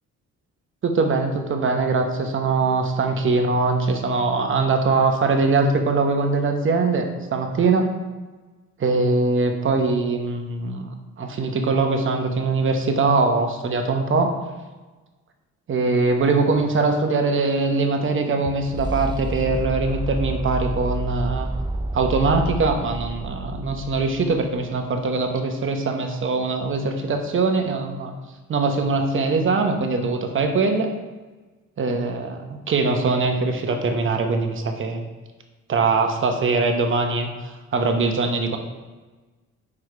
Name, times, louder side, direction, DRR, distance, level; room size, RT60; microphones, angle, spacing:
voice 1, 0.8-7.9 8.8-10.9 11.2-14.3 15.7-21.5 21.9-28.1 28.5-30.9 31.8-35.0 35.7-38.6, right 3 dB, 40° right, 4 dB, 1.0 m, -22 dB
sound 1, 16.6-24.7, right 2 dB, 15° right, 0.3 m, -30 dB
4.8 x 4.7 x 4.8 m, 1.2 s
cardioid pair, 90°, 30 cm